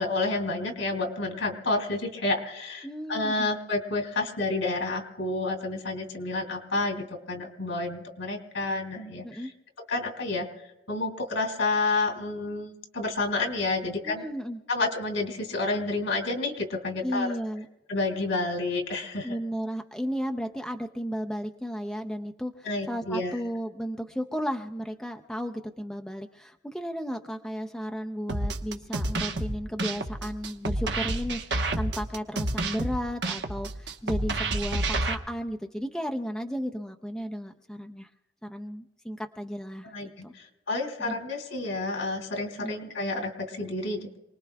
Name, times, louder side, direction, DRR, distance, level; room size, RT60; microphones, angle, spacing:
voice 1, 0.0-9.5 9.9-10.5 10.9-14.2 14.7-17.3 17.9-19.3 22.6-23.3 39.8-44.2, left 2 dB, 90° left, 3 dB, 3.1 m, -30 dB
voice 2, 2.8-3.5 9.2-9.5 14.0-14.6 17.0-17.7 19.2-38.1 38.4-39.9 40.2-40.3 41.0-41.1 42.6-42.7, equal, 5° left, 4 dB, 0.5 m, -34 dB
sound 1, 28.3-35.1, right 2 dB, 65° right, 1.1 m, -29 dB
27.5 x 20.0 x 2.3 m, 0.97 s
head